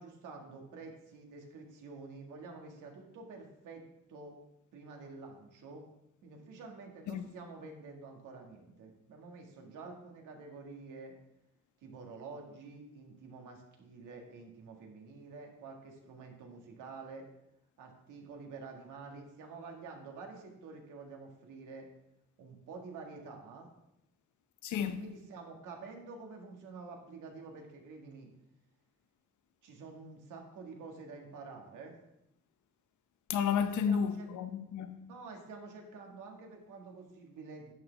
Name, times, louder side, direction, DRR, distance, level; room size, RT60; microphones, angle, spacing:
voice 1, 0.0-3.8 4.1-4.4 4.7-5.8 6.2-11.2 11.8-17.2 17.8-21.9 22.4-23.7 25.0-28.3 29.6-31.9 33.6-34.3 35.1-37.7, right 4 dB, 85° right, 1.8 m, -48 dB
voice 2, 24.6-25.0 33.3-35.0, left 7 dB, 75° left, 0.8 m, -32 dB
10.5 x 6.2 x 3.4 m
cardioid pair, 90°, 30 cm